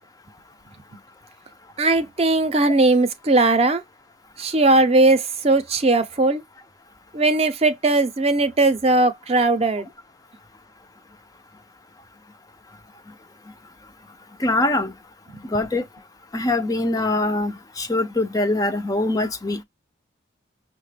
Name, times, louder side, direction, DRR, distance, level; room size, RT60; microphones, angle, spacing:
voice 1, 1.8-3.8 4.4-6.4 7.1-9.9 15.3-15.4, right 2 dB, 30° right, 0.6 m, -19 dB
voice 2, 14.4-14.9 15.5-15.8 16.3-19.6, left 2 dB, 20° left, 0.4 m, -23 dB
5.6 x 2.2 x 3.3 m
head